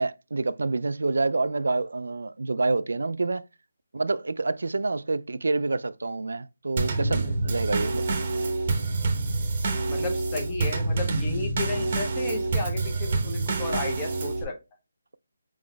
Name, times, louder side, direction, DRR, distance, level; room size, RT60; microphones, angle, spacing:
voice 1, 0.0-3.5 3.9-8.2, right 3 dB, 80° right, 0.3 m, -27 dB
Drum kit / Snare drum / Bass drum, 6.8-14.4, right 3 dB, 25° right, 0.8 m, -27 dB
voice 2, 7.0-7.6 9.9-14.5, left 3 dB, 10° left, 0.6 m, -34 dB
5.0 x 3.8 x 2.2 m
hypercardioid pair, 180°, 0 cm